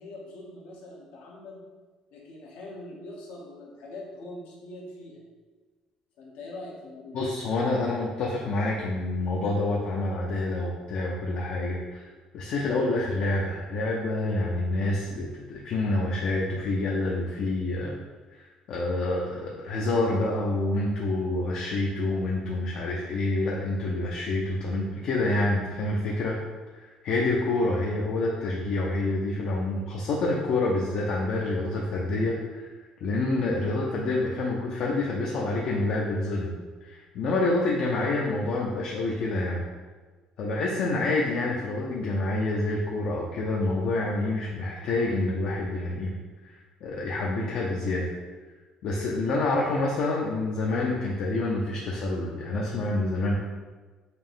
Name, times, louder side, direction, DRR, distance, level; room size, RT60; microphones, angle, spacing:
voice 1, 0.0-1.6 2.1-5.2 6.2-7.2, left 2 dB, 80° left, -3 dB, 1.0 m, -42 dB
voice 2, 7.1-12.1 12.3-17.9 18.3-26.4 26.7-32.7 33.0-36.5 36.8-39.6 40.4-46.1 46.4-48.1 48.8-53.4, left 2 dB, 60° left, -2 dB, 0.5 m, -27 dB
4.1 x 2.6 x 3.6 m, 1.4 s
cardioid pair, 140°, 2 cm